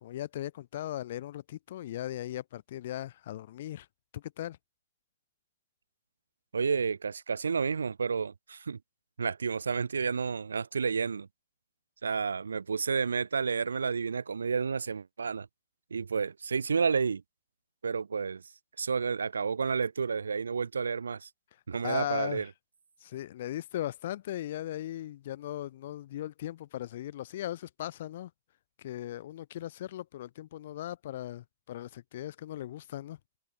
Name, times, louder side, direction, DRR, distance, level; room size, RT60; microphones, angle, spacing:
voice 1, 0.0-3.9 4.1-4.6 21.8-22.5 23.0-28.3 28.8-33.2, left 13 dB, 60° left, 1.2 m, -38 dB
voice 2, 6.5-8.8 9.2-11.3 12.0-15.5 15.9-17.2 17.8-18.4 18.8-21.3 21.7-22.5, right 5 dB, 85° right, 0.8 m, -30 dB
hypercardioid pair, 125°, 0 cm